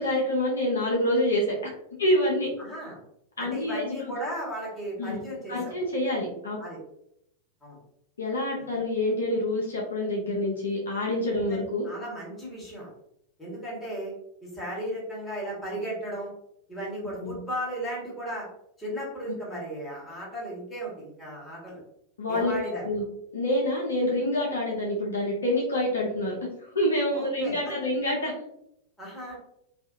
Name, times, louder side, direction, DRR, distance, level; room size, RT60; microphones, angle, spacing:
voice 1, 0.0-1.7 2.0-2.5 3.4-4.1 5.0-5.2 5.5-6.6 8.2-11.9 17.2-17.3 22.2-22.5 22.8-23.0 23.3-28.3, left 1 dB, 70° left, -2 dB, 0.6 m, -27 dB
voice 2, 2.6-3.0 3.4-5.7 6.6-6.8 7.6-7.8 11.5-12.9 13.4-14.1 14.4-16.3 16.7-18.5 18.8-21.8 22.3-22.9 27.1-27.7 29.0-29.4, right 1 dB, 10° left, -6 dB, 1.4 m, -35 dB
2.5 x 2.4 x 2.6 m, 0.78 s
figure-of-eight pair, 90°, 0 cm